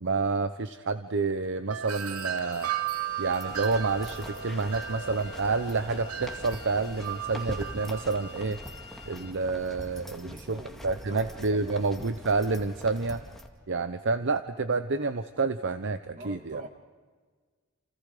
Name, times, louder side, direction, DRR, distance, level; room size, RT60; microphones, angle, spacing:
voice 1, 0.0-2.7 3.2-8.6 9.1-13.2 13.7-16.6, right 3 dB, 55° right, 10 dB, 0.8 m, -29 dB
Wind chime, 1.7-8.4, right 9 dB, 90° right, 1.3 m, -36 dB
sound 1, 2.0-9.3, left 5 dB, 30° left, 2.7 m, -49 dB
sound 2, 3.2-13.5, equal, ahead, 2.1 m, -44 dB
voice 2, 10.2-11.9 16.2-16.7, right 1 dB, 35° right, 5 dB, 2.5 m, -46 dB
29.5 x 29.0 x 5.0 m, 1.5 s
head